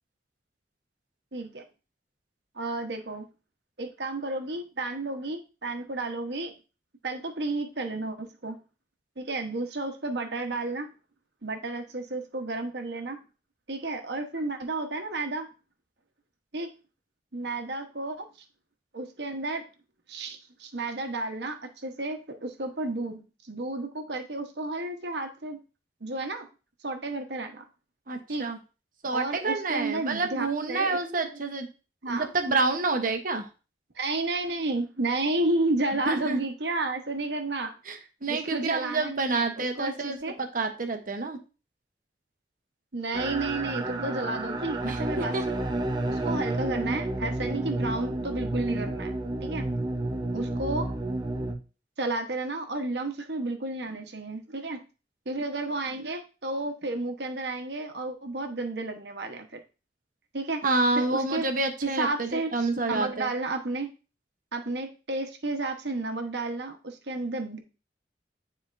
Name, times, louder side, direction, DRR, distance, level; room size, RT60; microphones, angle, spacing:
voice 1, 1.3-1.6 2.5-3.2 3.8-6.5 7.0-8.6 9.2-10.9 11.4-13.2 13.7-15.5 16.5-16.7 17.3-18.3 18.9-19.7 20.1-23.2 23.5-25.6 26.0-26.5 26.8-27.7 28.3-28.5 29.1-31.0 32.0-32.3 33.9-37.7 38.3-40.3 42.9-45.6 46.1-49.1 49.4-49.7 50.3-50.9 52.0-54.8 55.2-59.6 60.3-60.6 61.0-61.4 61.8-63.9 64.5-67.6, right 2 dB, 70° right, 5 dB, 1.2 m, -32 dB
voice 2, 28.1-28.6 29.0-31.7 32.1-33.5 36.1-36.4 37.9-41.4 44.8-45.4 60.6-63.3, right 3 dB, 50° right, 6 dB, 1.0 m, -28 dB
sound 1, 43.1-51.5, right 2 dB, 25° right, 0.7 m, -30 dB
9.7 x 4.4 x 2.6 m, 0.32 s
head